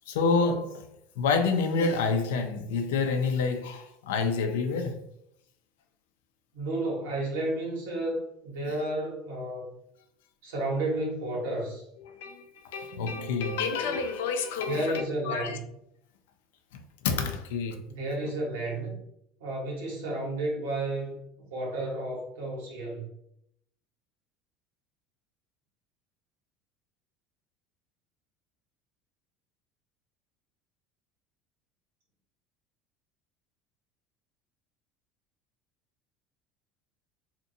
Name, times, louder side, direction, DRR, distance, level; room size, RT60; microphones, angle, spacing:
voice 1, 0.1-0.9 1.2-5.0 8.6-8.8 12.0-15.6 16.7-17.8, left 4 dB, 85° left, 0.4 m, -28 dB
voice 2, 6.5-9.7 10.4-11.8 14.7-15.6 17.9-19.0 19.4-21.1 21.5-23.1, right 1 dB, 85° right, 1.1 m, -32 dB
2.6 x 2.5 x 2.6 m
hypercardioid pair, 85°, 0 cm